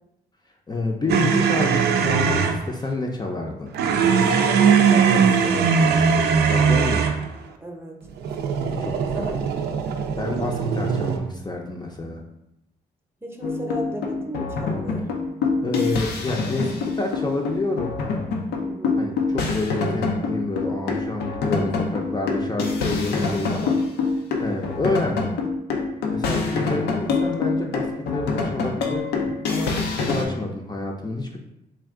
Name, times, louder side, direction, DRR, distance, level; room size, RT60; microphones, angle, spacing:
voice 1, 0.7-3.7 6.4-7.1 8.6-9.4 10.2-12.2 15.6-18.0 19.0-23.8 24.4-25.4 26.1-31.4, left 2 dB, 25° left, 0 dB, 0.5 m, -28 dB
sound 1, 1.1-2.6 3.7-7.2 8.2-11.2, right 6 dB, 80° right, 0.4 m, -20 dB
voice 2, 4.4-6.2 7.6-8.0 9.1-9.4 13.2-15.1 18.6-19.0, right 1 dB, 15° right, 1 dB, 0.7 m, -35 dB
sound 2, 13.4-30.2, left 4 dB, 85° left, 0.5 m, -26 dB
3.4 x 2.3 x 3.6 m, 0.85 s
cardioid pair, 65°, 17 cm